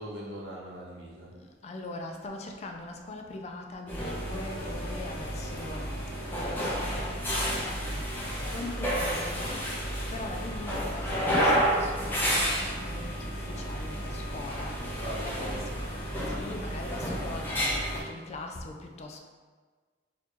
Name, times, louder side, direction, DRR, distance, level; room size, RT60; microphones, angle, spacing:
voice 1, 0.0-1.4 14.8-15.8, right 1 dB, 80° right, -5 dB, 1.0 m, -40 dB
voice 2, 1.4-15.7 16.0-19.2, left 2 dB, 35° left, 2 dB, 0.3 m, -42 dB
sound 1, 3.9-18.0, equal, 10° left, 0.7 m, -31 dB
4.1 x 2.8 x 3.0 m, 1.5 s
head